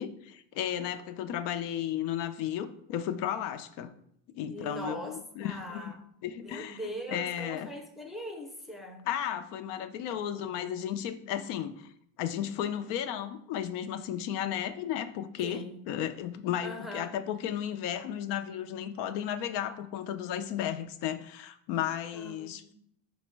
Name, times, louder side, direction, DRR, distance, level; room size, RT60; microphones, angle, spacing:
voice 1, 0.0-3.9 4.3-5.9 6.2-6.8 7.1-7.7 9.1-11.9 12.2-22.7, left 10 dB, 90° left, 9 dB, 0.5 m, -34 dB
voice 2, 4.5-6.0 6.4-9.1 15.4-15.9 16.6-17.2 22.1-22.7, equal, ahead, 2 dB, 0.4 m, -41 dB
5.1 x 2.1 x 4.5 m, 0.71 s
cardioid pair, 125°, 40 cm